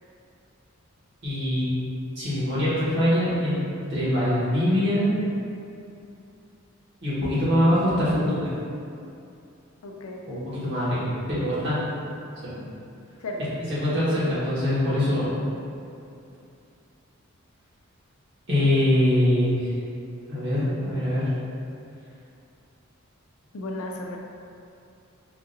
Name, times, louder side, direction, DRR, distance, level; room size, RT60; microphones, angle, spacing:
voice 1, 1.2-1.7 2.1-5.1 7.0-8.5 10.3-11.0 11.3-12.0 12.4-12.6 13.8-15.4 18.5-19.6 20.3-21.3, left 1 dB, 55° right, -11 dB, 1.4 m, -23 dB
voice 2, 9.8-10.2 13.2-13.4 23.5-24.2, left 2 dB, 85° left, 1 dB, 0.5 m, -34 dB
4.9 x 2.7 x 2.6 m, 2.6 s
head